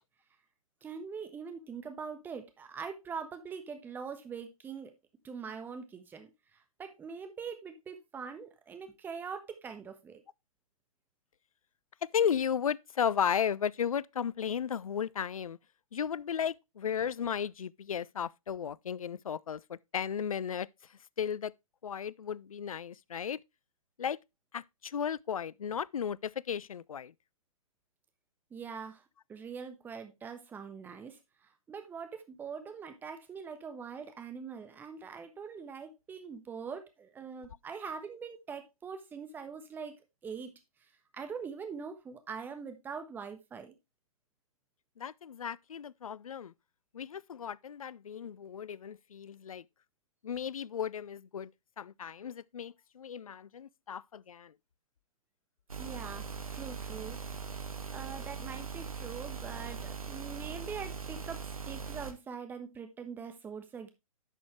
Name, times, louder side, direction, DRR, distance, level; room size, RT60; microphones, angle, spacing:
voice 1, 0.8-4.9 5.2-6.3 6.8-10.2 28.5-29.0 29.3-40.0 40.2-40.5 41.1-43.7 55.8-56.3 56.5-57.2 57.9-63.9, right 6 dB, 10° right, 1.2 m, -43 dB
voice 2, 12.0-15.6 15.9-20.7 21.2-21.5 21.8-23.4 24.0-24.2 24.5-27.1 45.0-46.5 46.9-49.6 50.2-51.5 51.8-54.5, left 8 dB, 75° left, 0.4 m, -34 dB
sound 1, 55.7-62.1, right 5 dB, 80° right, 1.4 m, -40 dB
11.0 x 6.2 x 3.1 m
figure-of-eight pair, 125°, 18 cm